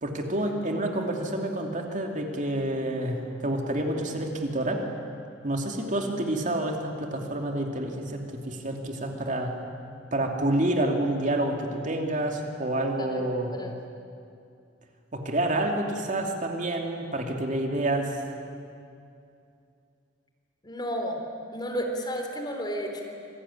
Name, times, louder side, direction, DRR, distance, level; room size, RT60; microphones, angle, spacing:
voice 1, 0.0-4.8 5.4-9.5 10.1-13.6 15.1-18.2, right 1 dB, 45° right, 2 dB, 2.8 m, -28 dB
voice 2, 20.6-21.2 21.5-23.0, equal, 25° left, 3 dB, 3.7 m, -32 dB
27.0 x 21.0 x 10.0 m, 2.5 s
head